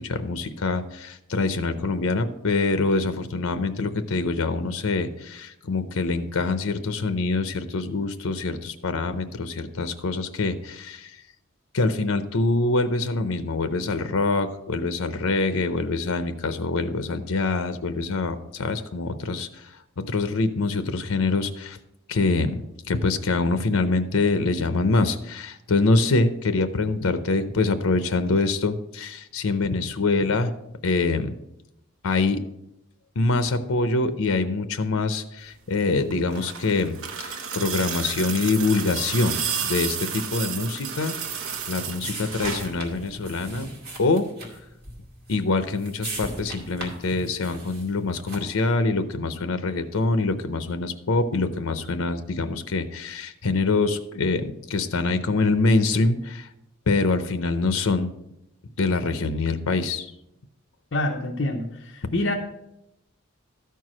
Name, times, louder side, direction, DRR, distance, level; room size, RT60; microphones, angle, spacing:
voice 1, 0.0-11.2 11.7-19.8 20.1-21.8 22.1-22.6 22.9-30.5 30.8-31.3 32.0-32.4 33.2-43.7 44.0-44.3 45.3-56.5 56.9-58.1 58.8-60.1, left 3 dB, 85° left, 10 dB, 0.7 m, -25 dB
sound 1, 36.0-42.8 44.1-44.2, right 7 dB, 85° right, 0.9 m, -31 dB
sound 2, 41.2-48.7, right 2 dB, 45° right, 2.4 m, -39 dB
voice 2, 60.9-62.3, left 1 dB, 60° left, 0 dB, 0.8 m, -26 dB
13.0 x 4.6 x 6.1 m, 0.86 s
head